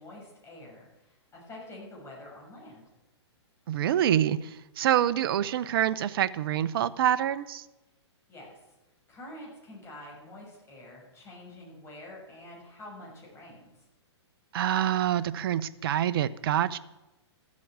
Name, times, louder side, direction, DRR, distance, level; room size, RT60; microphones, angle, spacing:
voice 1, 0.0-2.9 8.3-8.6 9.1-13.7, left 1 dB, 20° left, -2 dB, 6.6 m, -47 dB
voice 2, 3.7-7.6 14.5-16.8, right 11 dB, 55° right, 14 dB, 0.8 m, -26 dB
14.0 x 8.5 x 8.0 m, 1.0 s
hypercardioid pair, 135°, 15 cm